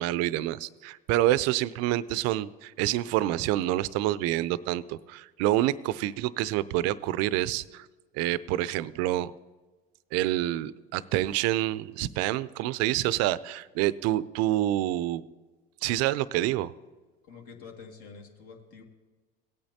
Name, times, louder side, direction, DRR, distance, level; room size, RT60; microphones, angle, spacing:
voice 1, 0.0-7.9 8.2-9.3 10.1-15.2 15.8-16.7, right 14 dB, 55° right, 18 dB, 0.5 m, -27 dB
voice 2, 17.2-18.8, left 5 dB, 50° left, 2 dB, 2.1 m, -47 dB
17.0 x 8.8 x 2.8 m, 1.3 s
hypercardioid pair, 85°, 30 cm